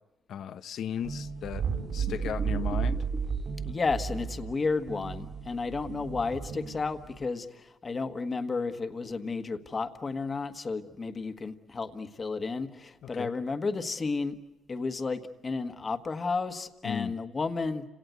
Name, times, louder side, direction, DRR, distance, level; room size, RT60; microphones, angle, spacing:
voice 1, 0.3-1.6 1.9-3.0 13.0-13.3 16.8-17.1, left 8 dB, 70° left, 0.8 m, -35 dB
sound 1, 1.0-7.2, right 6 dB, 60° right, 4.6 m, -33 dB
sound 2, 2.0-3.5 5.6-5.7, right 3 dB, 20° right, 1.3 m, -40 dB
voice 2, 3.6-14.4 14.7-17.9, left 4 dB, 35° left, 1.5 m, -32 dB
30.0 x 18.0 x 9.3 m
cardioid pair, 90°, 0 cm